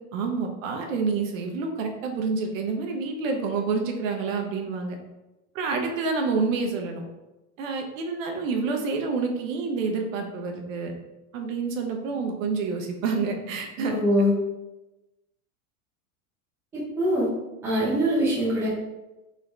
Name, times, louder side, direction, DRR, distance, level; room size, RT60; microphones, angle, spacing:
voice 1, 0.1-5.0 5.5-7.0 7.6-10.9 11.3-14.0, right 4 dB, 65° right, 3 dB, 0.9 m, -28 dB
voice 2, 13.9-14.3 16.7-17.3 17.6-18.7, equal, 5° right, -8 dB, 0.6 m, -23 dB
4.2 x 3.6 x 3.2 m, 1.0 s
supercardioid pair, 180°, 42 cm